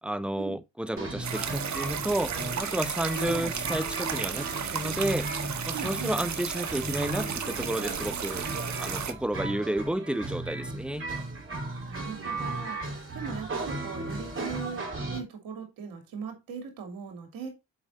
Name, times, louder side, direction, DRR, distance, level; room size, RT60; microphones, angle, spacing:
voice 1, 0.0-5.3 5.6-8.5 8.8-11.1, right 1 dB, 5° right, 0.8 m, -31 dB
sound 1, 1.0-15.2, right 2 dB, 35° right, 4.0 m, -36 dB
sound 2, 1.2-9.1, right 7 dB, 55° right, 1.4 m, -34 dB
voice 2, 3.1-3.5 5.7-6.1 11.9-17.5, right 6 dB, 85° right, 2.7 m, -39 dB
6.9 x 4.9 x 4.2 m
supercardioid pair, 60°, 34 cm